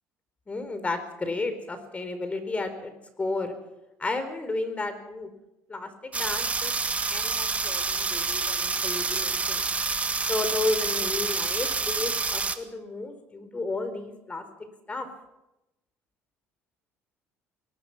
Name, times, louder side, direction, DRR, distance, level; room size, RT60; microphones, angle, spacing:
voice 1, 0.5-2.9 3.2-3.5 4.0-5.3 5.7-6.7 7.1-9.7 10.3-14.4 14.9-15.1, left 3 dB, 25° left, 9 dB, 4.2 m, -32 dB
sound 1, 6.1-12.6, right 4 dB, 25° right, 1.7 m, -28 dB
22.0 x 19.5 x 6.0 m, 0.92 s
supercardioid pair, 90°, 6 cm